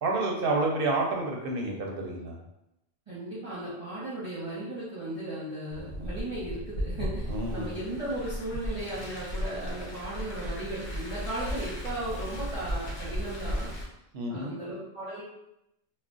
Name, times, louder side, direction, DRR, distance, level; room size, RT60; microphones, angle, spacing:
voice 1, 0.0-2.4 6.0-6.1 7.3-7.8 14.1-14.5, right 2 dB, 60° right, 0 dB, 0.8 m, -29 dB
voice 2, 3.1-13.7 14.3-15.2, right 1 dB, 30° right, -10 dB, 0.8 m, -36 dB
Car, 5.7-13.8, equal, 65° left, 1.0 m, -35 dB
2.3 x 2.2 x 3.7 m, 0.85 s
omnidirectional pair, 1.1 m